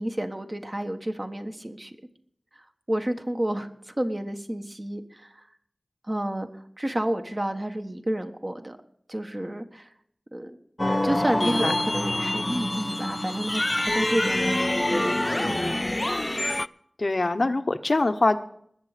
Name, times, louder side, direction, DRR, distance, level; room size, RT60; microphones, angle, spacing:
voice 1, 0.0-2.0 2.9-5.4 6.1-6.5 6.8-8.8 9.1-9.9 10.3-10.6 11.0-15.8, right 1 dB, 35° right, 5 dB, 1.4 m, -30 dB
sound 1, 10.8-16.7, left 1 dB, 30° left, 0.4 m, -26 dB
voice 2, 11.4-11.8 17.0-18.4, left 2 dB, 70° left, 10 dB, 0.9 m, -24 dB
20.5 x 7.3 x 5.0 m, 0.67 s
wide cardioid pair, 45°, 0 cm